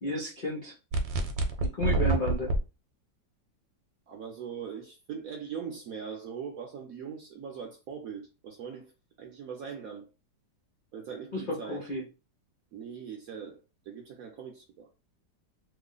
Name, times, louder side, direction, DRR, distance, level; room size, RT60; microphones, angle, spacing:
voice 1, 0.0-0.7 1.6-2.5 11.3-12.0, left 1 dB, 70° left, 0.5 m, -32 dB
sound 1, 0.9-2.6, right 2 dB, 90° right, 1.3 m, -27 dB
voice 2, 4.1-8.9 9.2-10.1 10.9-11.8 12.7-13.6 13.9-14.9, right 7 dB, 65° right, 0.9 m, -41 dB
3.1 x 2.1 x 3.7 m
omnidirectional pair, 2.0 m